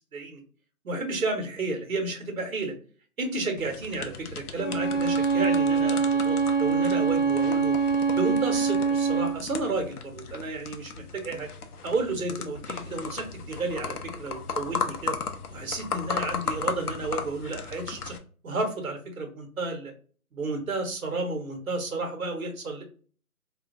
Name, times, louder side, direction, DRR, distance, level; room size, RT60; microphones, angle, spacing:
voice 1, 0.8-2.7 3.2-7.7 8.1-11.5 11.8-15.2 15.5-18.1 18.4-19.9 20.3-22.8, right 2 dB, 65° right, 3 dB, 1.1 m, -32 dB
sound 1, 3.6-18.2, left 5 dB, 80° left, 0.6 m, -36 dB
Bowed string instrument, 4.5-9.4, right 5 dB, ahead, 0.6 m, -24 dB
2.4 x 2.2 x 2.4 m, 0.42 s
figure-of-eight pair, 165°, 45 cm